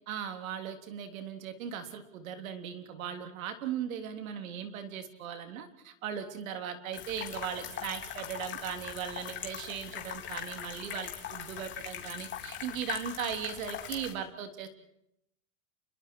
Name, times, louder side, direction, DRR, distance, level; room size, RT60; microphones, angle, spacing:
voice 1, 0.1-14.7, right 8 dB, 75° right, 7 dB, 3.5 m, -38 dB
sound 1, 6.9-14.1, left 9 dB, 25° left, 3.8 m, -41 dB
29.5 x 23.0 x 4.7 m, 0.77 s
supercardioid pair, 145°, 41 cm